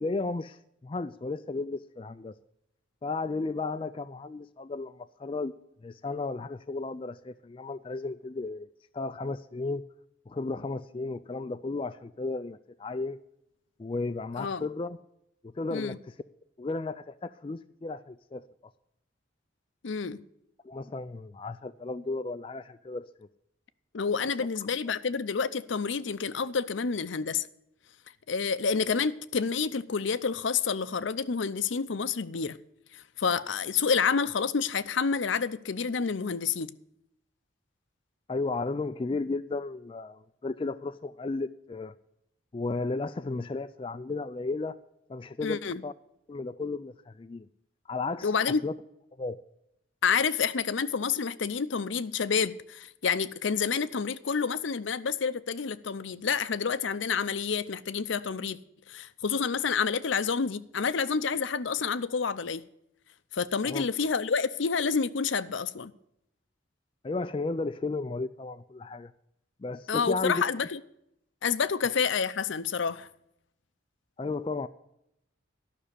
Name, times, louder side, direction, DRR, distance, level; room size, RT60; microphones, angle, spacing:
voice 1, 0.0-2.3 3.0-5.5 5.8-8.7 8.9-9.8 10.3-13.2 13.8-15.0 15.6-16.1 16.6-18.4 20.6-23.0 38.3-41.9 42.5-44.8 45.1-45.9 46.3-47.5 47.9-48.7 49.2-49.4 63.6-63.9 67.0-69.1 69.6-70.4 74.2-74.7, left 3 dB, 25° left, 0.3 m, -34 dB
voice 2, 14.4-14.7 15.7-16.0 19.8-20.2 23.9-27.5 28.3-32.6 32.9-36.7 45.4-45.8 48.2-48.6 50.0-58.6 58.9-62.6 63.3-65.9 69.9-70.8 71.4-73.1, left 5 dB, 70° left, 0.6 m, -29 dB
12.5 x 6.2 x 8.2 m
head